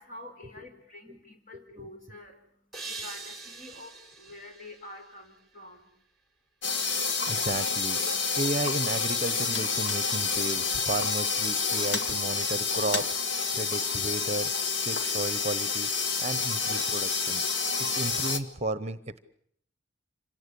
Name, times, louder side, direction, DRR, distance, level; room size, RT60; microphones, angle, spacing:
voice 1, 0.0-2.4 2.9-3.9 4.2-5.9, left 1 dB, 40° left, 4 dB, 4.7 m, -47 dB
voice 2, 1.5-1.9 7.2-14.5 14.8-15.9 16.2-19.2, right 2 dB, 35° right, 15 dB, 1.0 m, -34 dB
sound 1, 2.7-5.9, right 3 dB, ahead, 3.4 m, -44 dB
sound 2, 6.6-18.4, left 5 dB, 60° left, 1.7 m, -28 dB
26.5 x 18.0 x 8.4 m, 0.66 s
head